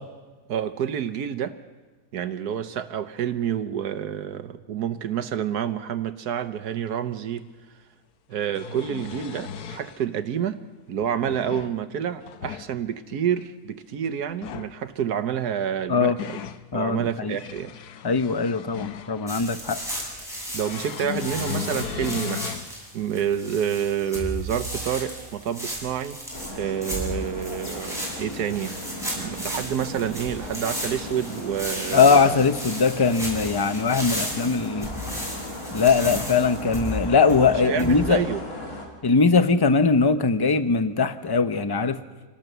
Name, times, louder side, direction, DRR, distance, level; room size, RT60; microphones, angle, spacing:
voice 1, 0.5-1.5 2.1-7.5 8.3-10.6 10.9-16.5 16.7-17.7 20.5-22.6 22.9-26.2 26.5-28.7 29.1-32.5 37.5-38.4, right 9 dB, 85° right, 11 dB, 1.5 m, -28 dB
sound 1, 7.4-7.5 8.3-10.0 11.0-11.8 12.2-12.7 14.3-14.7 15.7-16.6 17.2-19.4 20.6-22.7 23.2-23.3 24.8-24.9, left 8 dB, 90° left, 1.4 m, -36 dB
voice 2, 16.7-17.4 18.0-19.8 31.9-34.9 35.7-38.2 39.0-42.0, left 4 dB, 25° left, 10 dB, 0.6 m, -21 dB
sound 2, 19.3-38.2, equal, ahead, 7.3 m, -34 dB
sound 3, 26.3-38.9, left 1 dB, 65° left, 3.9 m, -37 dB
26.5 x 18.5 x 6.8 m, 1.3 s
omnidirectional pair, 1.6 m